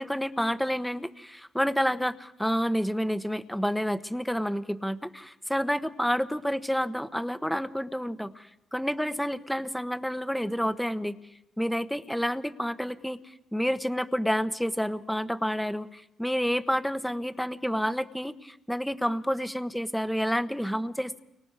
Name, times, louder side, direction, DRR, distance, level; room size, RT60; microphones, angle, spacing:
voice 1, 0.0-11.1 11.6-13.2 13.5-21.2, equal, ahead, 11 dB, 1.1 m, -29 dB
29.0 x 24.5 x 4.8 m, 0.89 s
cardioid pair, 90°, 0 cm